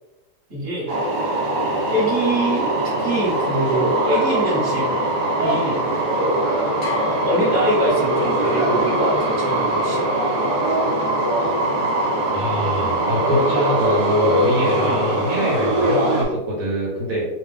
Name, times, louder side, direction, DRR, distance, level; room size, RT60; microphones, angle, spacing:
voice 1, 0.5-1.0 1.9-4.9 5.4-5.9 6.8-10.1 14.8-15.0, right 1 dB, 15° right, -6 dB, 1.0 m, -24 dB
sound 1, 0.9-16.3, right 1 dB, 85° right, 1.3 m, -21 dB
sound 2, 6.8-8.6, left 5 dB, 50° left, 0.9 m, -35 dB
voice 2, 12.3-17.3, equal, 65° right, -4 dB, 1.1 m, -24 dB
2.5 x 2.4 x 3.6 m, 1.1 s
omnidirectional pair, 1.7 m